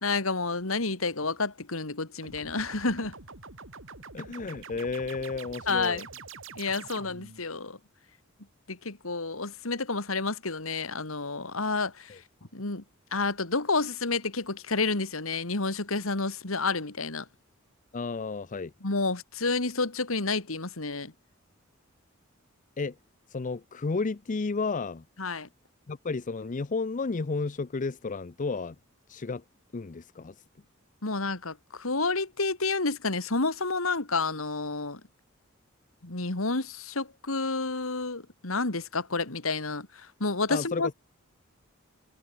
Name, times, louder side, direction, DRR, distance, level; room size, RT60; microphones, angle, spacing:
voice 1, 0.0-3.1 5.7-6.1 6.6-7.8 8.7-12.2 12.5-12.8 13.1-17.3 18.8-21.1 25.2-25.5 31.0-35.0 36.0-40.9, left 3 dB, 75° left, 2.5 m, -30 dB
sound 1, 2.2-7.4, right 5 dB, 65° right, 3.9 m, -45 dB
voice 2, 4.1-6.0 12.1-12.2 17.9-18.7 22.8-23.0 23.3-25.0 25.9-28.8 29.1-29.4 29.7-30.4 40.5-40.9, left 4 dB, 40° left, 0.6 m, -32 dB
head